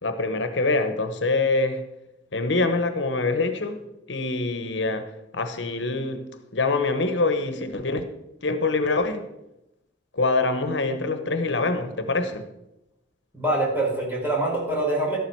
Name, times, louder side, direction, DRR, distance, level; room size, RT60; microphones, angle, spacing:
voice 1, 0.0-1.8 2.3-3.8 4.1-8.1 8.4-9.2 10.1-12.5, left 3 dB, 75° left, 1.2 m, -25 dB
voice 2, 13.3-15.2, right 2 dB, 10° right, 5.2 m, -24 dB
13.5 x 11.5 x 4.7 m
head